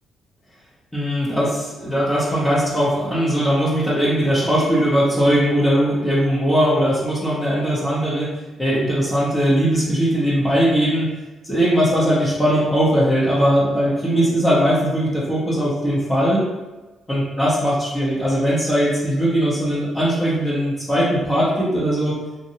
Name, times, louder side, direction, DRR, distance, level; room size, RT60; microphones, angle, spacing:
voice 1, 0.9-8.3 8.6-11.1 11.4-16.4 17.1-22.2, equal, 15° left, -6 dB, 0.7 m, -19 dB
2.7 x 2.2 x 2.9 m, 1.2 s
cardioid pair, 90°, 0 cm